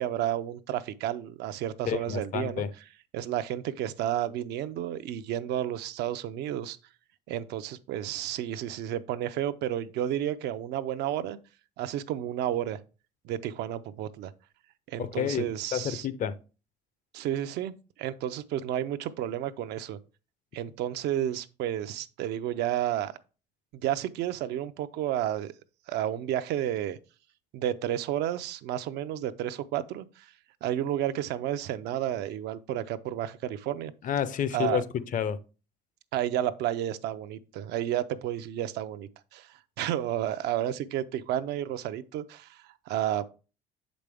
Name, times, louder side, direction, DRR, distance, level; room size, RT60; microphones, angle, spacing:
voice 1, 0.0-2.6 3.1-6.8 7.3-11.4 11.8-12.8 13.2-14.3 14.9-16.1 17.1-20.0 20.5-23.1 23.7-25.5 25.9-27.0 27.5-30.3 30.6-33.9 34.5-34.8 36.1-43.2, right 11 dB, 80° right, 0.5 m, -31 dB
voice 2, 1.9-2.7 15.0-16.3 34.0-35.4, left 8 dB, 50° left, 0.5 m, -30 dB
6.6 x 5.1 x 3.4 m
cardioid pair, 110°, 17 cm